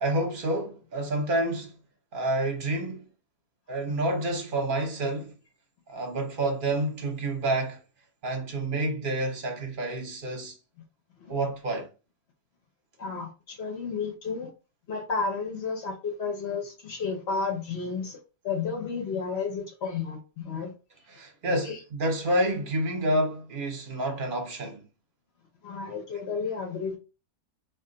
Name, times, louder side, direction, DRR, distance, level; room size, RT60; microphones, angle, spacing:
voice 1, 0.0-1.7 2.1-3.1 3.7-5.3 5.9-7.8 8.2-10.5 11.3-11.9 21.1-24.8, right 1 dB, 45° right, 0.7 m, -28 dB
voice 2, 13.0-14.5 14.9-18.2 18.4-20.7 21.5-21.8 25.6-27.0, left 5 dB, 60° left, 0.7 m, -32 dB
2.5 x 2.3 x 3.7 m
omnidirectional pair, 1.7 m